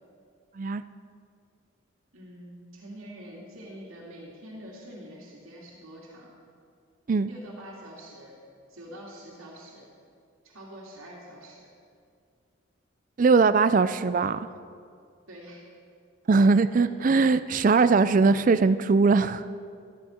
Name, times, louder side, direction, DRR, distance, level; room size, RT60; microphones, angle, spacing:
voice 1, 2.1-6.3 7.2-8.4 8.7-9.9 10.4-11.7 15.3-15.6 16.8-16.9, equal, 85° right, -4 dB, 2.3 m, -45 dB
voice 2, 13.2-14.5 16.3-19.4, right 4 dB, 40° right, 13 dB, 0.3 m, -20 dB
13.0 x 12.5 x 4.3 m, 2.3 s
head